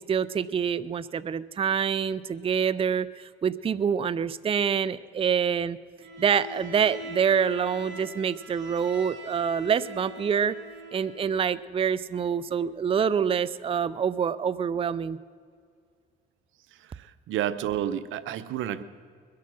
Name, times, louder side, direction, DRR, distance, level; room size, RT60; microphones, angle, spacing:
voice 1, 0.0-5.8 6.2-10.6 10.9-15.2, right 7 dB, 30° right, 16 dB, 0.4 m, -26 dB
Bowed string instrument, 6.0-11.6, equal, 60° right, 3.6 m, -42 dB
voice 2, 16.8-18.8, right 10 dB, 85° right, 14 dB, 0.7 m, -31 dB
22.0 x 8.5 x 6.2 m, 2.1 s
cardioid pair, 90°, 20 cm